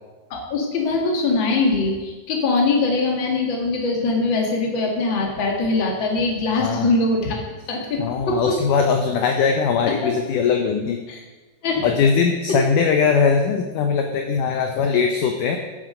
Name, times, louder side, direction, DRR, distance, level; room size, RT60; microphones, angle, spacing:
voice 1, 0.3-7.4 7.7-8.5 11.1-11.2 11.6-11.9, left 3 dB, 40° left, 0 dB, 2.1 m, -22 dB
voice 2, 8.0-11.0 11.8-15.6, left 6 dB, 75° left, 4 dB, 2.0 m, -20 dB
10.0 x 8.2 x 6.5 m, 1.2 s
omnidirectional pair, 4.4 m